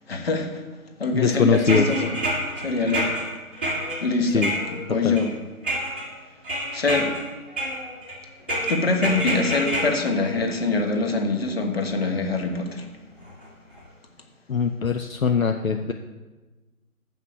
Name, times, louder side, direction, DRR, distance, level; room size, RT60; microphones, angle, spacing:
voice 1, 0.1-0.6 1.0-2.1 2.6-3.2 4.0-4.5 4.9-5.3 6.7-7.1 8.7-12.8, left 3 dB, 45° left, 4 dB, 1.3 m, -24 dB
voice 2, 1.1-1.9 4.3-4.5 5.0-5.2 14.5-15.9, left 6 dB, 65° left, 6 dB, 0.7 m, -21 dB
sound 1, 1.5-5.3 5.6-6.1 6.4-7.2 7.6-8.2 8.5-11.1 12.1-12.2 13.3-13.4 13.8-13.9, equal, 10° right, 0.9 m, -28 dB
7.2 x 5.9 x 7.2 m, 1.2 s
figure-of-eight pair, 155°, 43 cm